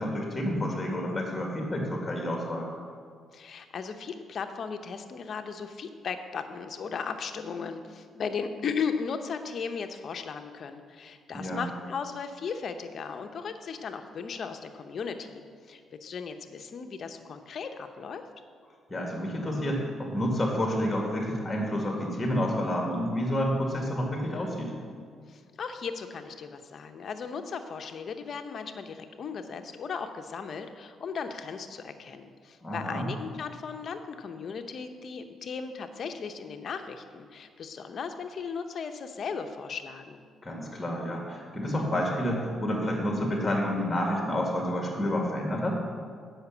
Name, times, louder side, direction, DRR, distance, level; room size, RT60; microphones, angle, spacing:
voice 1, 0.0-2.7 11.3-11.6 18.9-24.7 32.6-33.1 40.4-45.8, equal, 20° left, 0 dB, 1.8 m, -29 dB
voice 2, 3.3-18.2 25.3-40.2, left 6 dB, 55° left, 7 dB, 0.7 m, -36 dB
8.0 x 5.8 x 7.1 m, 2.1 s
cardioid pair, 90°, 0 cm